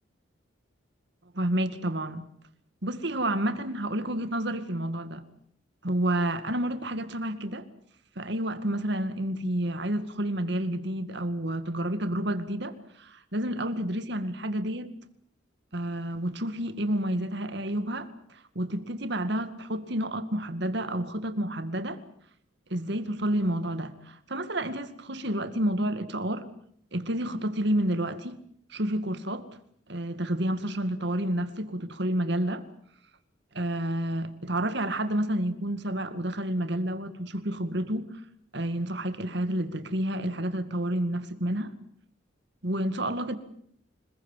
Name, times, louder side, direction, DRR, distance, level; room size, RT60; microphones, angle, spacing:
voice 1, 1.3-2.2 2.8-5.3 5.8-7.7 8.2-14.9 15.7-22.0 22.7-26.5 26.9-28.4 28.7-29.5 29.9-32.6 33.5-38.1 38.5-41.7 42.6-43.4, right 1 dB, 60° right, 2.2 m, -30 dB
26.0 x 21.5 x 7.5 m
head